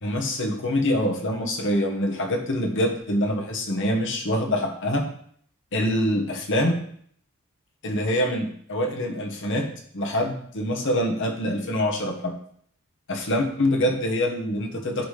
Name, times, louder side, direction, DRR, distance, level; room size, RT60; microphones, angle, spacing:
voice 1, 0.0-5.1 5.7-6.8 7.8-12.3 13.1-15.1, left 1 dB, 55° left, 3 dB, 1.2 m, -25 dB
10.0 x 4.0 x 3.3 m, 0.62 s
head